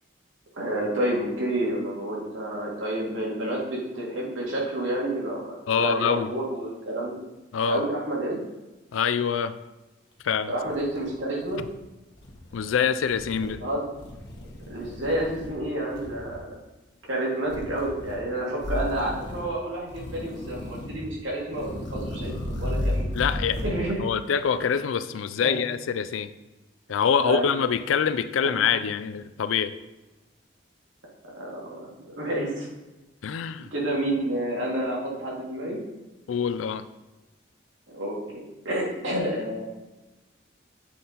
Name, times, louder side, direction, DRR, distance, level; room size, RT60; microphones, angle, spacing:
voice 1, 0.5-7.2 7.7-8.4 10.5-11.6 13.4-13.9 14.7-16.5 17.1-23.0 23.6-24.0 25.4-25.6 27.2-27.5 28.5-28.6 31.3-32.7 33.7-35.8 37.9-39.6, right 1 dB, 80° right, -4 dB, 2.1 m, -29 dB
voice 2, 5.7-6.3 7.5-7.8 8.9-9.5 10.2-10.5 11.6-11.7 12.5-13.6 23.1-23.6 24.0-26.3 26.9-29.8 33.2-33.7 36.3-36.9, left 7 dB, 85° left, 13 dB, 0.4 m, -25 dB
sound 1, 10.2-10.3 10.6-11.8 12.1-12.6 13.1-13.6 14.0-15.6 15.9-16.4 17.5-18.2 18.6-19.5 19.9-21.1 21.5-23.8, left 1 dB, 60° left, 1.1 m, -34 dB
7.5 x 3.9 x 4.1 m, 1.1 s
head